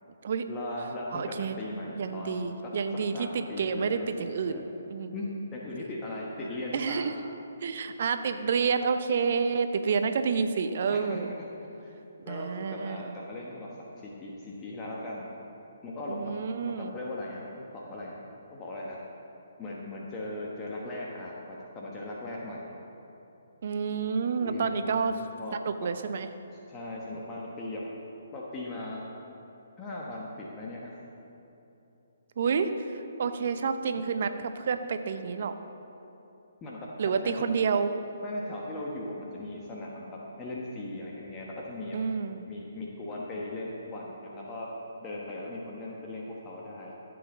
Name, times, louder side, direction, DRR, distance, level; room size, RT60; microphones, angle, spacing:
voice 1, 0.5-2.7 3.1-4.6 5.1-7.1 10.9-11.2 11.8-11.9 12.2-15.3 15.8-16.3 16.6-18.2 18.5-19.0 19.6-22.8 24.4-25.6 26.7-27.9 28.3-29.0 29.8-30.9 36.6-37.5 38.2-42.0 42.5-44.7 45.0-46.9, left 1 dB, 20° left, -4 dB, 1.2 m, -38 dB
voice 2, 1.1-1.5 2.0-5.1 6.7-7.1 7.6-11.3 12.2-13.1 16.1-16.9 23.6-25.1 25.6-26.3 32.4-32.7 33.2-35.5 37.0-37.9 41.9-42.5, right 5 dB, 50° right, 9 dB, 0.7 m, -29 dB
14.5 x 7.8 x 4.0 m, 2.9 s
figure-of-eight pair, 135°, 0 cm